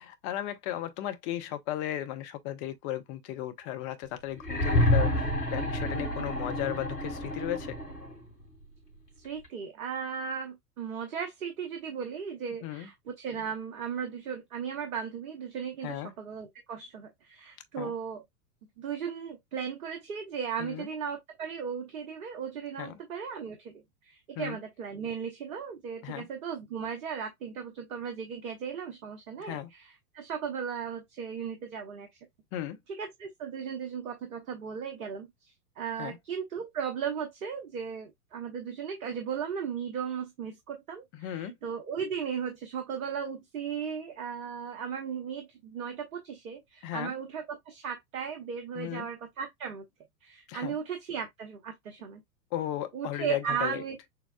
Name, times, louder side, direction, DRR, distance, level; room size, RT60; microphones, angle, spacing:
voice 1, 0.0-7.8 12.6-12.9 15.8-16.1 17.8-17.9 20.6-20.9 22.8-23.0 24.4-24.6 26.0-26.3 29.4-29.7 32.5-32.8 36.0-36.2 41.2-41.5 46.8-47.1 48.7-49.1 50.5-50.8 52.5-53.8, left 12 dB, 25° left, 0.6 m, -35 dB
sound 1, 4.4-8.2 9.4-9.5, left 1 dB, 75° left, 2.0 m, -28 dB
voice 2, 9.2-18.2 18.8-23.7 24.0-32.1 32.9-49.8 50.2-52.2 52.9-54.0, right 7 dB, 60° right, 1.1 m, -36 dB
6.5 x 2.3 x 2.2 m
figure-of-eight pair, 100°, 48 cm